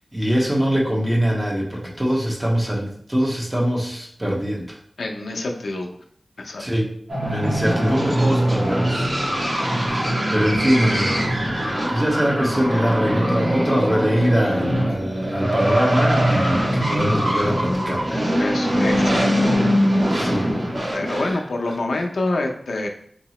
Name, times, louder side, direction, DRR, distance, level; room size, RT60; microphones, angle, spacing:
voice 1, 0.1-4.8 6.6-6.9 7.3-9.1 9.7-11.2 11.5-18.3 20.1-20.5 21.1-21.3, equal, 20° right, -3 dB, 1.1 m, -23 dB
voice 2, 5.0-5.9 6.4-6.6 18.4-19.3 20.9-22.9, left 2 dB, 90° left, 2 dB, 0.5 m, -26 dB
sound 1, 7.1-21.3, equal, 75° right, 1.6 m, -22 dB
3.8 x 2.8 x 3.0 m, 0.63 s
wide cardioid pair, 50°, 0 cm